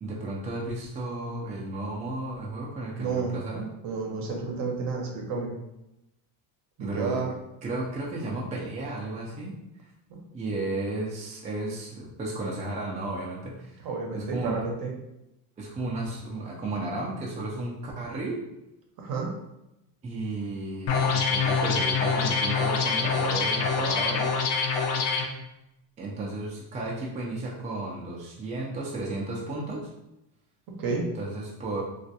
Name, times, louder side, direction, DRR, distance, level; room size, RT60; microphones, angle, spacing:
voice 1, 0.0-3.7 6.8-7.2 7.6-9.6 10.3-13.8 14.1-14.6 15.6-18.4 20.0-24.3 26.0-29.9 31.2-31.8, right 2 dB, 15° right, -4 dB, 0.4 m, -33 dB
voice 2, 3.0-3.4 3.8-5.5 6.8-7.3 10.1-10.2 13.8-14.9 19.0-19.3 30.7-31.1, right 4 dB, 50° right, 0 dB, 0.7 m, -31 dB
sound 1, 20.9-25.3, left 5 dB, 55° left, 0.6 m, -25 dB
2.4 x 2.1 x 2.7 m, 0.89 s
supercardioid pair, 105°, 46 cm